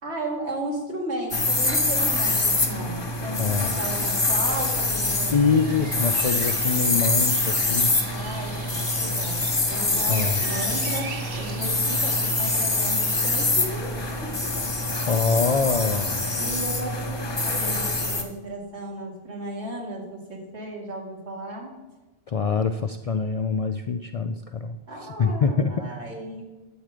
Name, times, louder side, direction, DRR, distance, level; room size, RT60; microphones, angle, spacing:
voice 1, 0.0-5.5 5.8-5.9 8.0-13.9 14.2-14.5 16.4-21.7 24.9-26.4, right 1 dB, 85° right, -1 dB, 2.4 m, -35 dB
sound 1, 1.3-18.2, left 2 dB, 25° left, 0.9 m, -25 dB
voice 2, 3.4-3.8 5.3-7.9 10.1-10.4 15.0-16.4 22.3-24.8 25.2-25.7, left 5 dB, 60° left, 8 dB, 0.4 m, -24 dB
sound 2, 4.4-16.4, right 5 dB, 60° right, 1.1 m, -42 dB
11.0 x 7.5 x 5.0 m, 1.1 s
omnidirectional pair, 1.1 m